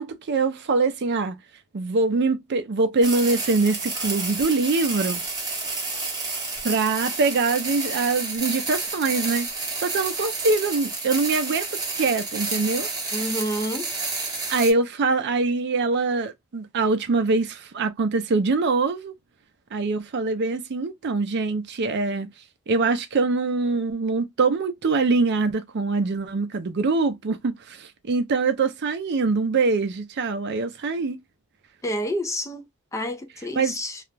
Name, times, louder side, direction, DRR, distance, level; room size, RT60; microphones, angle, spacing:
voice 1, 0.0-1.4 1.7-5.2 6.3-6.4 6.6-9.5 9.8-12.9 14.5-19.1 19.7-22.3 22.7-31.2 33.5-33.8, right 3 dB, 55° right, 0.5 m, -23 dB
sound 1, 3.0-14.7, right 3 dB, 20° right, 0.8 m, -30 dB
voice 2, 13.1-13.9 31.8-32.7 32.9-34.0, equal, 15° left, 0.4 m, -29 dB
2.4 x 2.1 x 3.1 m
head